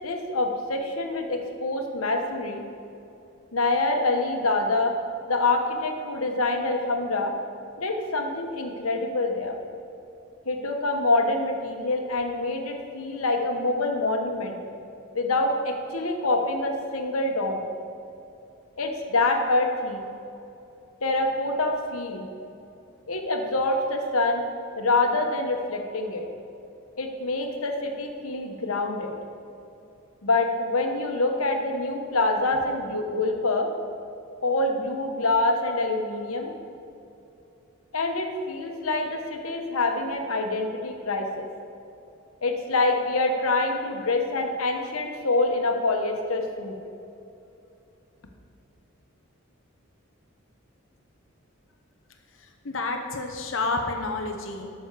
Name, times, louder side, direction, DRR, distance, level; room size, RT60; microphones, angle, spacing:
voice 1, 0.0-2.6 3.5-4.9 5.3-7.3 7.8-9.6 10.4-14.6 15.1-17.7 18.8-20.1 21.0-22.3 23.1-24.4 24.8-26.3 27.0-29.1 30.2-33.7 34.4-36.5 37.9-41.5 42.4-46.8, left 2 dB, 90° left, 3 dB, 1.3 m, -26 dB
voice 2, 52.6-54.7, left 3 dB, 65° left, 3 dB, 0.9 m, -29 dB
12.0 x 6.3 x 6.7 m, 2.8 s
head